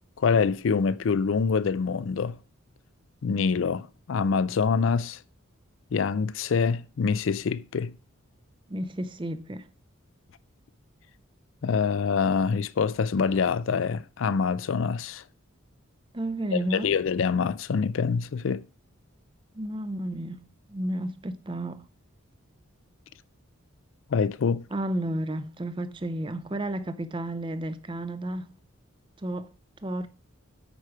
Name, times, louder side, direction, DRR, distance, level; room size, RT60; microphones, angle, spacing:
voice 1, 0.2-2.4 3.2-5.2 5.9-7.9 11.6-15.2 16.5-18.6 24.1-24.6, left 5 dB, 65° left, 0.4 m, -25 dB
voice 2, 8.7-9.6 16.1-16.9 19.5-21.8 24.7-28.6 29.2-29.5 29.8-30.1, right 1 dB, 25° right, 0.5 m, -32 dB
8.9 x 4.9 x 4.8 m
head